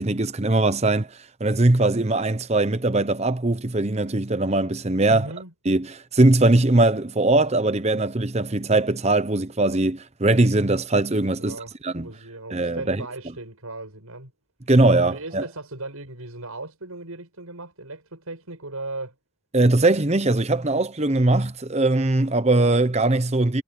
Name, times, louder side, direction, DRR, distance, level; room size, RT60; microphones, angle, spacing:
voice 1, 0.0-5.3 5.6-11.6 11.8-12.1 12.5-13.0 14.7-15.4 19.5-23.6, right 2 dB, 30° right, 0.9 m, -21 dB
voice 2, 5.1-5.5 11.4-14.3 15.0-19.1, right 2 dB, 80° right, 6.9 m, -37 dB
head